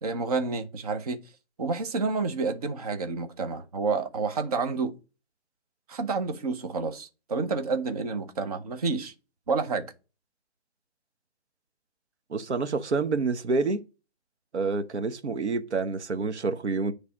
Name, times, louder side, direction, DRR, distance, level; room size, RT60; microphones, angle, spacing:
voice 1, 0.0-1.2 1.6-4.9 5.9-9.1 9.5-9.9, right 4 dB, 35° right, 0.8 m, -29 dB
voice 2, 12.3-13.8 14.5-16.9, right 4 dB, 85° right, 1.1 m, -28 dB
9.9 x 3.4 x 4.8 m
hypercardioid pair, 165°, 33 cm